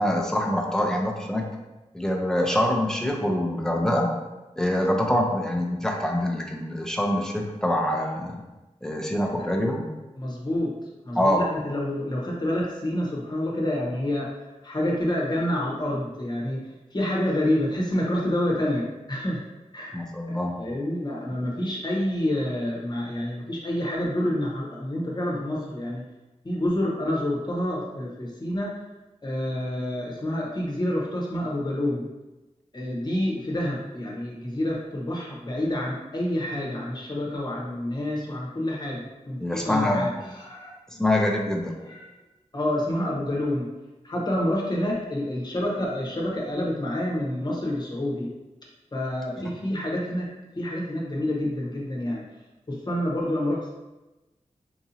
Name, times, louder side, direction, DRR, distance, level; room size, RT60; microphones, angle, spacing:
voice 1, 0.0-1.5 1.9-4.1 4.6-8.4 8.8-9.8 11.1-11.4 19.9-20.5 39.4-40.2 41.0-41.7, left 1 dB, 5° left, 0 dB, 0.6 m, -25 dB
voice 2, 10.1-19.4 19.7-20.0 20.3-26.0 26.4-28.7 29.2-32.0 32.7-40.7 41.9-42.0 42.5-43.7 44.0-48.3 48.9-50.3 50.5-52.2 52.7-53.7, left 1 dB, 35° left, -3 dB, 1.0 m, -28 dB
4.7 x 2.7 x 2.7 m, 1.1 s
wide cardioid pair, 85°, 13 cm